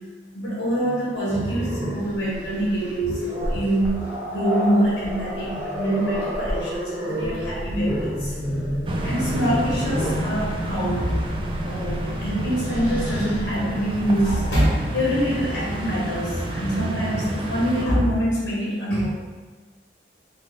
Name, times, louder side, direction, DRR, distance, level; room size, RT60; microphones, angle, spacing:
voice 1, 0.3-8.4 9.0-11.2 11.6-19.1, equal, 80° left, -6 dB, 1.3 m, -25 dB
Growling, 1.3-10.3 11.7-11.9 12.3-13.4, equal, 10° right, 0.7 m, -30 dB
sound 1, 7.2-14.6, equal, 60° left, 0.6 m, -34 dB
sound 2, 8.9-17.9, right 1 dB, 30° right, 0.3 m, -30 dB
3.8 x 2.1 x 3.3 m, 1.3 s
head